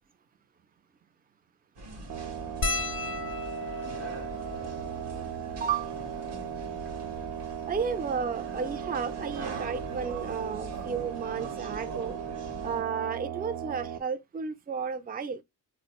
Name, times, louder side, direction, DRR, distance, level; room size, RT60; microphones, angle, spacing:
sound 1, 1.7-12.8, right 2 dB, 85° right, 1.1 m, -43 dB
sound 2, 2.1-14.0, right 9 dB, 65° right, 0.7 m, -37 dB
sound 3, 2.6-7.2 8.0-8.1 8.3-8.5 9.7-9.9 11.4-11.5 11.7-11.9, left 4 dB, 30° left, 0.5 m, -37 dB
voice 1, 5.6-5.9 7.7-12.2 12.6-15.4, right 6 dB, 25° right, 0.4 m, -33 dB
3.9 x 2.1 x 2.9 m
supercardioid pair, 45°, 41 cm